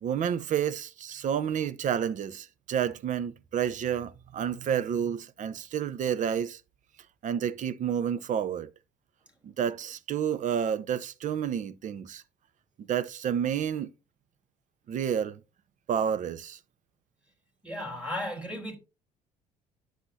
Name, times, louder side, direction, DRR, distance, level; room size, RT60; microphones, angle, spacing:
voice 1, 0.0-6.6 7.2-8.7 9.4-12.2 12.9-13.9 14.9-15.4 15.9-16.6, right 8 dB, 40° right, 0.7 m, -30 dB
voice 2, 17.6-18.8, left 1 dB, 5° right, 3.0 m, -35 dB
9.6 x 6.4 x 2.7 m
figure-of-eight pair, 55°, 19 cm